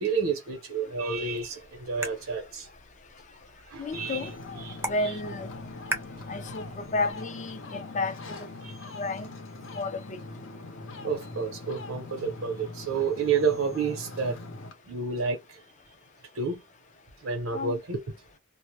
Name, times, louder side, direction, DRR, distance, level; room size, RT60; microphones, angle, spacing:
voice 1, 0.0-2.7 3.7-4.2 4.6-4.8 8.6-8.8 10.8-14.4 14.9-15.6 16.3-16.6 17.2-18.0, right 5 dB, 75° right, 0.7 m, -30 dB
sound 1, 1.1-7.1, right 2 dB, 10° right, 0.5 m, -41 dB
voice 2, 3.8-4.3 4.8-5.5 6.3-8.5 8.9-9.3 9.7-10.2 17.5-17.8, left 2 dB, 35° left, 0.5 m, -32 dB
Ocean, 3.9-14.7, left 2 dB, 70° left, 0.7 m, -41 dB
2.1 x 2.0 x 3.0 m
head